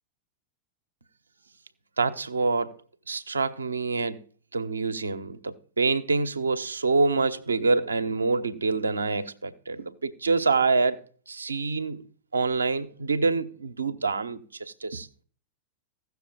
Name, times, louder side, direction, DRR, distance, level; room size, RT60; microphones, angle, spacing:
voice 1, 2.0-2.8 3.1-4.2 4.5-12.0 12.3-15.1, right 4 dB, 75° right, 1.0 m, -26 dB
16.0 x 6.7 x 5.3 m
figure-of-eight pair, 90°, 0 cm